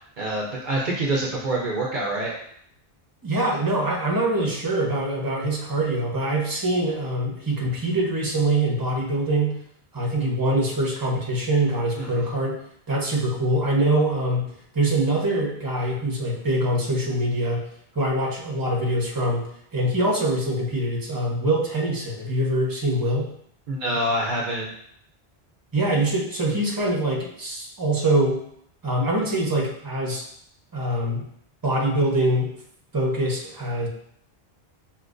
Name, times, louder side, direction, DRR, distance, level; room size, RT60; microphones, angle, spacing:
voice 1, 0.2-2.3 12.0-12.2 23.7-24.7, right 1 dB, 55° right, -3 dB, 0.8 m, -26 dB
voice 2, 3.2-9.6 9.9-12.6 12.9-17.7 17.9-23.3 25.7-28.4 28.8-30.2 30.7-31.2 31.6-32.5 32.9-33.9, right 1 dB, 20° right, -2 dB, 0.9 m, -24 dB
6.1 x 2.9 x 2.5 m, 0.69 s
omnidirectional pair, 1.0 m